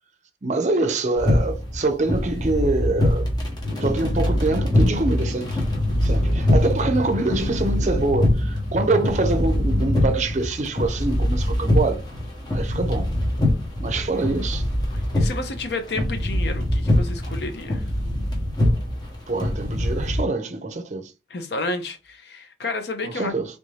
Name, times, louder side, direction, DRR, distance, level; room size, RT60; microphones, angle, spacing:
voice 1, 0.4-3.3 3.8-5.6 6.0-12.0 12.5-13.1 13.8-14.6 19.3-21.1 23.0-23.5, right 3 dB, 40° right, 0.5 m, -25 dB
sound 1, 1.2-20.2, left 1 dB, 25° left, 0.9 m, -24 dB
sound 2, 3.6-10.4, left 2 dB, 50° left, 1.6 m, -29 dB
voice 2, 14.9-17.9 21.3-23.3, left 2 dB, 70° left, 0.7 m, -31 dB
3.3 x 2.6 x 3.2 m
head